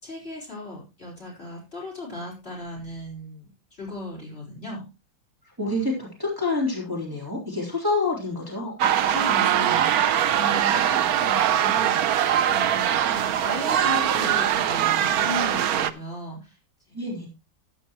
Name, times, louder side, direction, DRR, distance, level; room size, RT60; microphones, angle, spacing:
voice 1, 0.0-4.8 9.1-16.6 16.9-17.3, left 2 dB, 30° left, -3 dB, 4.7 m, -37 dB
voice 2, 5.6-8.8 16.9-17.3, left 2 dB, 10° right, -4 dB, 3.7 m, -27 dB
sound 1, 8.8-15.9, right 10 dB, 65° right, 1.0 m, -22 dB
13.0 x 9.5 x 3.0 m, 0.28 s
omnidirectional pair, 2.1 m